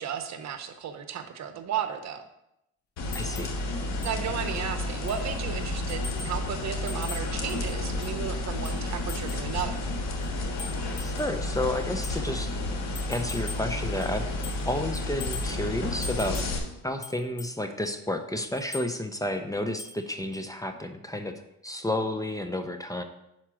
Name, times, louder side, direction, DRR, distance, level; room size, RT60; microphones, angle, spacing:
voice 1, 0.0-2.2 4.0-9.8, right 8 dB, 65° right, 8 dB, 0.9 m, -34 dB
sound 1, 3.0-16.6, left 2 dB, 65° left, 1.5 m, -31 dB
sound 2, 3.1-3.6 4.0-4.2 4.6-4.7 5.1-5.3 5.9-6.4 6.9-8.2 8.6-9.5 10.2-11.4 12.0-12.2 12.9-13.7 14.0-14.7 14.9-15.6 16.0-16.6 17.0-17.6 18.6-18.9 19.8-20.1 20.3-20.5, left 4 dB, 35° left, 1.1 m, -42 dB
voice 2, 3.1-3.5 11.0-12.6 13.1-14.3 14.7-16.4 16.8-21.3 21.6-23.0, left 1 dB, 10° left, 6 dB, 0.6 m, -31 dB
5.8 x 4.5 x 6.2 m, 0.83 s
cardioid pair, 90°, 30 cm